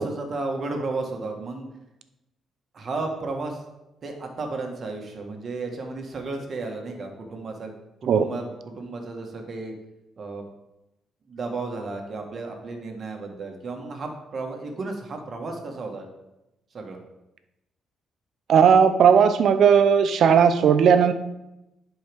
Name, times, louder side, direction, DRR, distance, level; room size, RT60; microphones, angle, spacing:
voice 1, 0.0-1.7 2.7-3.6 4.0-7.7 8.0-9.7 10.2-10.4 11.3-16.1 16.7-17.0, right 3 dB, 45° right, 3 dB, 1.6 m, -33 dB
voice 2, 18.5-21.1, right 7 dB, 65° right, 10 dB, 0.6 m, -16 dB
10.5 x 4.7 x 3.6 m, 0.91 s
cardioid pair, 90°, 0 cm